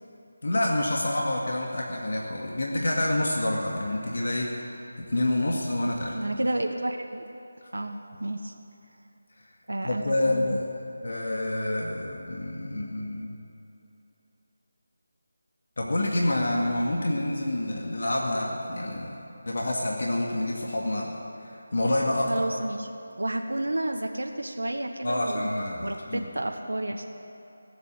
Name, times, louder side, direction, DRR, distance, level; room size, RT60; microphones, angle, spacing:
voice 1, 0.4-4.8 5.1-6.2 9.8-10.7 11.0-13.4 15.8-19.2 19.5-22.4 25.0-26.2, left 1 dB, 65° left, -2 dB, 2.0 m, -28 dB
voice 2, 6.1-7.2 7.7-8.5 9.7-10.6 22.2-22.9 23.2-25.5 25.8-27.1, right 1 dB, 85° right, 4 dB, 1.1 m, -31 dB
17.0 x 8.3 x 8.8 m, 2.9 s
figure-of-eight pair, 165°, 0 cm